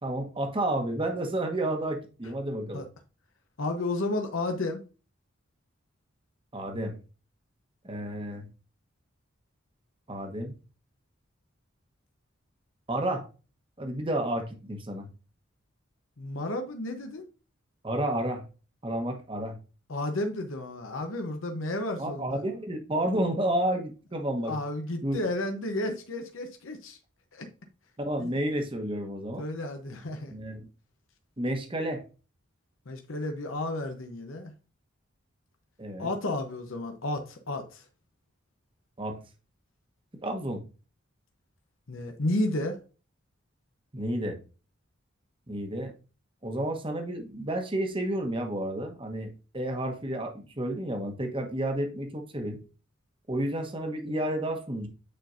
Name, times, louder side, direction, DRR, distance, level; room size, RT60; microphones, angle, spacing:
voice 1, 0.0-2.8 6.5-7.0 7.8-8.5 10.1-10.6 12.9-13.3 13.8-15.1 17.8-18.4 18.8-19.6 22.0-24.6 25.0-25.2 28.0-29.4 30.3-30.6 31.4-32.0 35.8-36.1 39.0-39.2 40.2-40.6 43.9-44.4 45.5-45.9 46.4-52.6 53.3-54.9, right 1 dB, 25° right, 1.1 m, -31 dB
voice 2, 3.6-4.8 16.2-17.2 19.9-22.4 24.4-27.0 27.3-27.5 28.2-28.3 29.4-30.3 32.9-34.5 36.0-37.8 41.9-42.8, left 1 dB, 85° left, 0.9 m, -32 dB
8.7 x 4.2 x 2.6 m
head